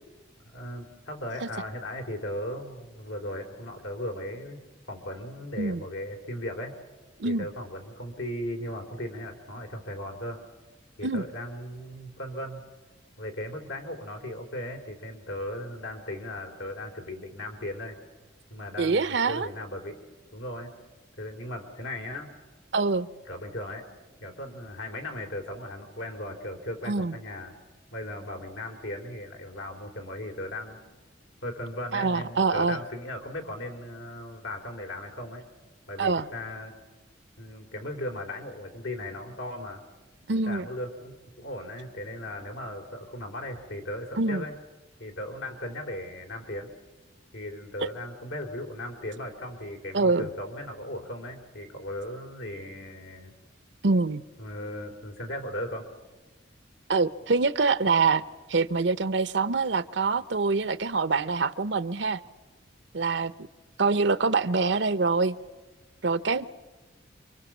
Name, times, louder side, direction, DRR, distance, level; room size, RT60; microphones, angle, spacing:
voice 1, 0.5-4.6 4.9-6.7 7.2-10.4 11.0-12.6 13.2-18.0 18.5-20.0 20.3-20.7 21.2-22.3 23.3-23.9 24.2-27.5 27.9-30.8 31.4-35.4 35.9-36.7 37.4-39.8 40.5-44.5 45.0-46.7 47.3-53.3 54.4-55.9, left 1 dB, 85° left, 3 dB, 3.3 m, -37 dB
voice 2, 18.8-19.5 22.7-23.1 26.9-27.2 31.9-32.8 36.0-36.3 40.3-40.7 44.2-44.4 49.9-50.3 53.8-54.2 56.9-58.2 58.5-62.2 62.9-63.3 63.8-65.3 66.0-66.5, right 4 dB, 65° right, 16 dB, 0.8 m, -25 dB
28.0 x 24.5 x 7.3 m, 1.2 s
head